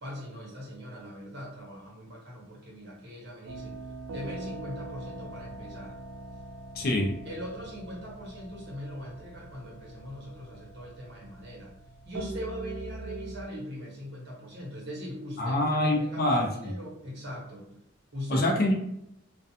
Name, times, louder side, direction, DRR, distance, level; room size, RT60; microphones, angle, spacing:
voice 1, 0.0-6.0 7.2-11.7 12.0-18.5, equal, 55° right, -4 dB, 1.0 m, -41 dB
sound 1, 3.5-13.5, right 2 dB, 80° right, 0.3 m, -42 dB
voice 2, 6.8-7.2 15.4-16.5 18.3-18.7, left 1 dB, 50° left, 1 dB, 0.5 m, -25 dB
2.4 x 2.3 x 2.7 m, 0.79 s
head